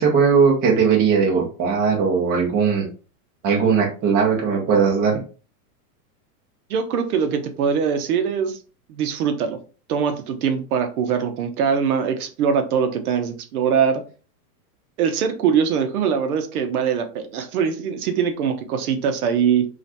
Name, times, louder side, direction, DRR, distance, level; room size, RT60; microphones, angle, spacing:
voice 1, 0.0-2.8 3.4-5.2, right 6 dB, 20° right, -2 dB, 0.6 m, -18 dB
voice 2, 6.7-8.6 8.9-9.6 9.9-14.0 15.0-19.7, right 7 dB, 65° right, 6 dB, 0.7 m, -22 dB
3.0 x 2.4 x 2.8 m, 0.36 s
supercardioid pair, 155°, 47 cm